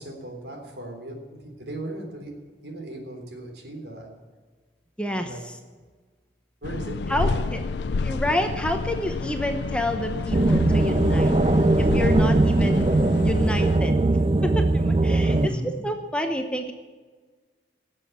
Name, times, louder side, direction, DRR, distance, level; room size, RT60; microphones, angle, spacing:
voice 1, 0.0-2.3 2.6-4.2 5.1-5.4 6.6-7.5 15.3-15.8, right 1 dB, 70° right, 2 dB, 3.5 m, -36 dB
voice 2, 5.0-5.3 7.1-7.6 8.0-11.3 11.8-12.9 13.2-15.6 15.8-16.7, left 1 dB, 5° left, 5 dB, 0.9 m, -29 dB
sound 1, 6.6-13.8, left 4 dB, 70° left, 0.4 m, -29 dB
sound 2, 10.3-15.5, right 2 dB, 30° right, 0.4 m, -20 dB
18.0 x 7.5 x 8.3 m, 1.4 s
head